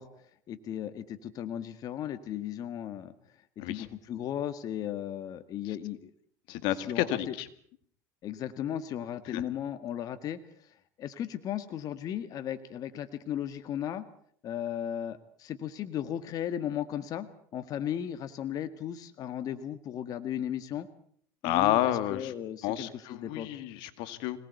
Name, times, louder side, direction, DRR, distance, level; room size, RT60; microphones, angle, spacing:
voice 1, 0.0-3.1 3.7-6.1 6.8-7.3 8.2-14.0 14.4-20.9 21.4-23.6, left 10 dB, 50° left, 10 dB, 1.7 m, -36 dB
voice 2, 6.5-7.5 9.3-9.4 21.4-22.3 22.6-24.4, left 13 dB, 70° left, 12 dB, 2.0 m, -30 dB
26.0 x 19.0 x 8.2 m, 0.62 s
supercardioid pair, 115°, 8 cm